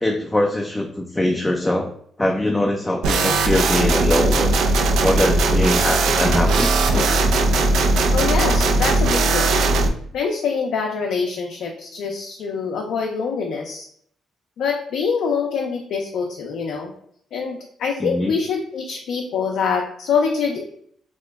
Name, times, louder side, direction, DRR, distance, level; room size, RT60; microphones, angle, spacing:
voice 1, 0.0-1.9 2.2-4.6 5.0-7.2 18.0-18.3, left 1 dB, 10° left, 2 dB, 0.3 m, -22 dB
sound 1, 3.0-9.9, right 2 dB, 80° right, 0.3 m, -18 dB
voice 2, 8.1-9.6 10.1-13.9 14.6-16.9 17.3-20.6, left 5 dB, 75° left, 1 dB, 0.4 m, -25 dB
2.9 x 2.1 x 3.4 m, 0.64 s
cardioid pair, 90°, 0 cm